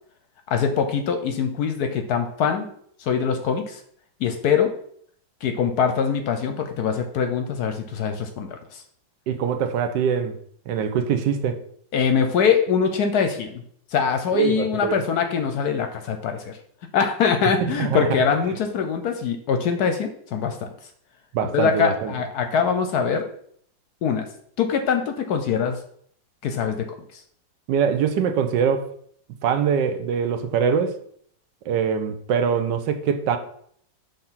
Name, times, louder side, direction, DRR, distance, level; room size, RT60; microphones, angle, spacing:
voice 1, 0.5-2.7 3.0-3.8 4.2-4.7 5.4-8.8 11.9-13.6 13.9-16.6 16.9-20.7 21.5-23.2 24.0-24.3 24.6-25.8 26.4-26.9 27.1-27.2, left 6 dB, 70° left, 6 dB, 1.0 m, -23 dB
voice 2, 9.3-10.4 10.7-11.6 14.3-15.0 17.8-18.1 21.3-22.1 27.7-28.9 29.4-31.0 31.7-33.4, right 7 dB, 75° right, 7 dB, 1.3 m, -23 dB
5.7 x 3.5 x 5.6 m, 0.63 s
omnidirectional pair, 2.0 m